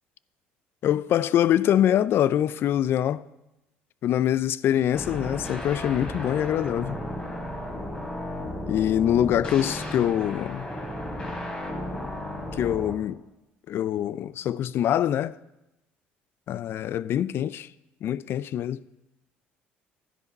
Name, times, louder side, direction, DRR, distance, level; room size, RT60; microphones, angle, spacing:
voice 1, 0.8-3.2 4.0-7.0 8.4-10.7 12.5-13.2 13.7-15.4 16.5-17.7 18.0-18.8, left 11 dB, 55° left, 0.4 m, -24 dB
sound 1, 4.9-12.9, left 1 dB, 20° left, 3.2 m, -34 dB
12.5 x 10.5 x 4.1 m
supercardioid pair, 80°, 5 cm